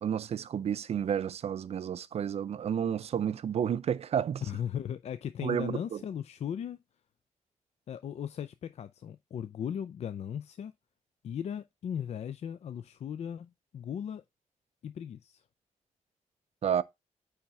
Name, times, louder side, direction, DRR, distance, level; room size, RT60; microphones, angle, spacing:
voice 1, 0.0-4.4 5.4-6.0 16.6-16.8, right 8 dB, 55° right, 0.4 m, -31 dB
voice 2, 4.4-6.8 7.9-10.7 11.2-14.2 14.8-15.4, left 9 dB, 55° left, 0.4 m, -37 dB
8.7 x 3.5 x 4.1 m
wide cardioid pair, 150°, 13 cm